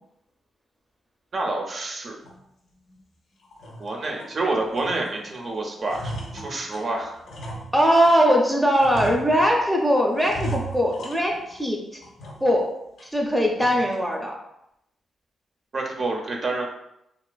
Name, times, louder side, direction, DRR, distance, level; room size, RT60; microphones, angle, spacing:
voice 1, 1.3-2.2 3.8-7.1 15.7-16.7, right 2 dB, 50° right, 0 dB, 0.5 m, -28 dB
sound 1, 2.2-2.4 2.9-3.0 3.4-4.4 4.7-5.4 5.6-8.3 8.8-9.7 10.2-11.7 12.0-12.6 13.0-13.1 13.6-14.0, right 1 dB, 70° left, 0.5 m, -36 dB
voice 2, 7.7-12.0 12.4-12.7 13.1-14.3, equal, ahead, -1 dB, 0.5 m, -20 dB
2.4 x 2.3 x 2.2 m, 0.82 s
cardioid pair, 65°, 0 cm